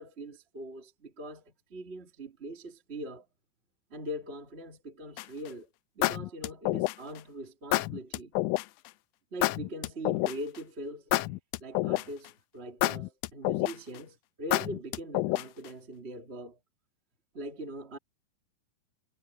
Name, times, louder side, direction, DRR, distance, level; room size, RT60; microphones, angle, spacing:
voice 1, 0.0-3.3 3.9-5.7 6.0-8.3 9.3-11.2 11.6-16.6 17.3-18.0, right 1 dB, 20° right, 2.0 m, -42 dB
sound 1, 5.2-5.5 6.0-7.2 7.7-8.6 9.4-10.6 11.1-12.3 12.8-14.0 14.5-15.7, left 18 dB, 80° left, 1.8 m, -28 dB
omnidirectional pair, 3.9 m